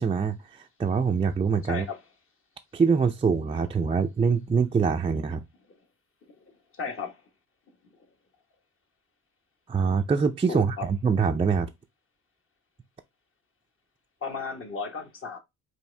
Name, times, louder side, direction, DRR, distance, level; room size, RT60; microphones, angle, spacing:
voice 1, 0.0-1.9 2.7-5.4 9.7-11.7, right 5 dB, 20° right, 0.4 m, -24 dB
voice 2, 6.8-7.2 10.5-10.8 14.2-15.4, left 5 dB, 40° left, 1.2 m, -34 dB
4.5 x 2.6 x 3.2 m
supercardioid pair, 75°, 31 cm